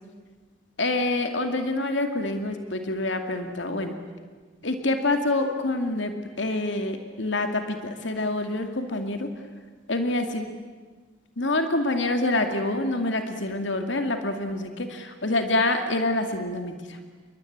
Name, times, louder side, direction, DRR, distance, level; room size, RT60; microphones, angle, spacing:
voice 1, 0.8-4.0 4.6-9.3 9.9-10.4 11.4-17.0, left 2 dB, 70° left, 6 dB, 2.4 m, -26 dB
29.5 x 23.0 x 8.8 m, 1.4 s
head